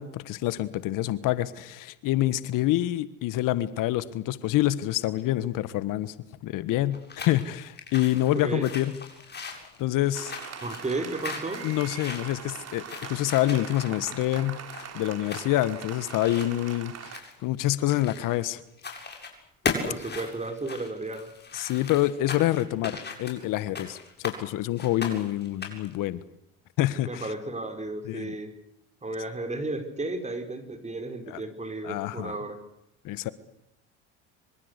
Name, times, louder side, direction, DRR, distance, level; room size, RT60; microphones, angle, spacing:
voice 1, 0.0-6.1 6.4-9.0 9.8-10.3 11.6-14.6 14.9-17.1 17.4-18.6 21.5-26.2 26.8-27.3 28.0-28.3 31.3-31.4 31.8-32.3 33.0-33.3, left 14 dB, 65° left, 15 dB, 1.5 m, -27 dB
sound 1, 6.9-18.5 18.8-19.3 19.6-24.4 24.8-25.9, left 5 dB, 30° left, 7.4 m, -38 dB
voice 2, 8.3-8.6 10.6-11.6 19.8-21.3 27.0-28.5 29.0-32.6, right 2 dB, 20° right, 7 dB, 5.0 m, -33 dB
Applause, 10.1-17.2, right 8 dB, 45° right, 4.0 m, -41 dB
26.0 x 25.0 x 8.3 m, 0.76 s
supercardioid pair, 85°, 35 cm